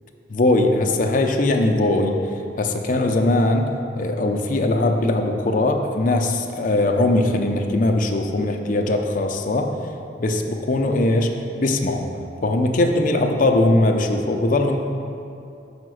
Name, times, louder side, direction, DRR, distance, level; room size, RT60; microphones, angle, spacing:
voice 1, 0.3-2.2 2.6-3.7 4.0-9.7 10.2-11.3 11.6-12.0 12.4-14.8, left 2 dB, 50° left, 3 dB, 0.6 m, -20 dB
5.7 x 5.0 x 6.3 m, 2.7 s
head